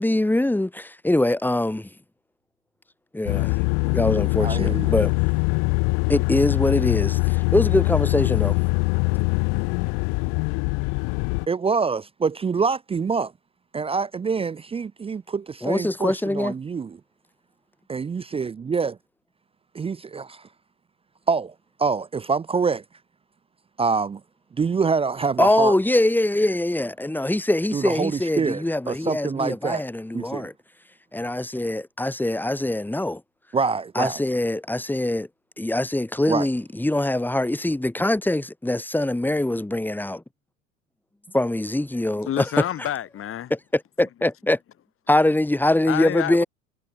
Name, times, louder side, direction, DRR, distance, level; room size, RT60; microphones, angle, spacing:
voice 1, 0.0-1.9 3.1-3.6 3.9-5.1 6.1-8.6 15.6-16.5 25.4-30.5 31.1-33.2 33.9-35.3 35.6-40.2 41.3-42.9 43.5-44.6 45.1-46.4, left 1 dB, 5° left, 4.9 m, -23 dB
sound 1, 3.3-11.5, left 37 dB, 45° left, 0.9 m, -23 dB
voice 2, 4.4-4.9 11.5-13.3 13.7-17.0 17.9-19.0 19.7-20.4 21.3-21.5 21.8-22.8 23.8-24.2 24.6-25.7 27.7-29.8 30.1-30.5 33.5-34.2 36.3-36.5, right 5 dB, 15° right, 0.8 m, -25 dB
voice 3, 42.3-43.5 45.9-46.4, left 11 dB, 30° left, 3.1 m, -28 dB
hypercardioid pair, 105°, 43 cm